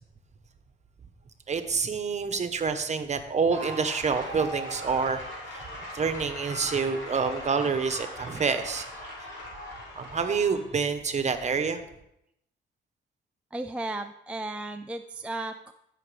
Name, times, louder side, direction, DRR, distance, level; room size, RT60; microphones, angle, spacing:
voice 1, 1.5-5.2 5.5-5.6 5.9-8.8 10.0-11.8, right 5 dB, 35° right, 9 dB, 1.0 m, -27 dB
sound 1, 3.5-10.7, equal, 65° left, 3.1 m, -39 dB
voice 2, 13.5-15.7, right 2 dB, 5° right, 6 dB, 0.4 m, -35 dB
14.5 x 5.9 x 3.4 m, 0.79 s
cardioid pair, 90°, 20 cm